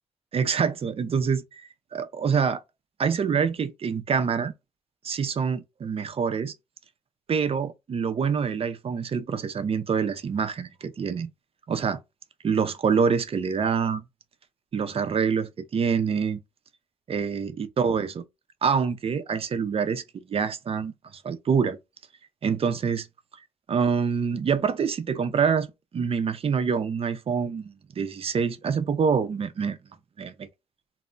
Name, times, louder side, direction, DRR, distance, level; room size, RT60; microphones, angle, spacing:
voice 1, 0.3-2.6 3.0-4.5 5.0-6.5 7.3-11.3 11.7-12.0 12.4-14.0 14.7-16.4 17.1-18.2 18.6-20.9 21.2-21.8 22.4-23.1 23.7-29.8 30.2-30.3, right 6 dB, 50° right, 0.5 m, -26 dB
2.1 x 2.0 x 3.6 m
supercardioid pair, 55°, 13 cm